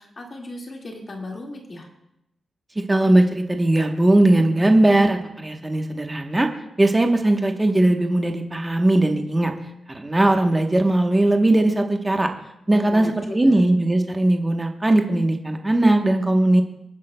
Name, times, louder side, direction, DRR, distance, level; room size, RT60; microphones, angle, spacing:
voice 1, 0.0-1.9 12.7-13.6, left 2 dB, 35° left, 0 dB, 1.9 m, -36 dB
voice 2, 2.9-6.5 6.8-9.5 9.9-12.3 12.7-16.6, right 1 dB, 15° right, 4 dB, 1.0 m, -19 dB
27.0 x 10.0 x 2.2 m, 0.85 s
wide cardioid pair, 160°, 0 cm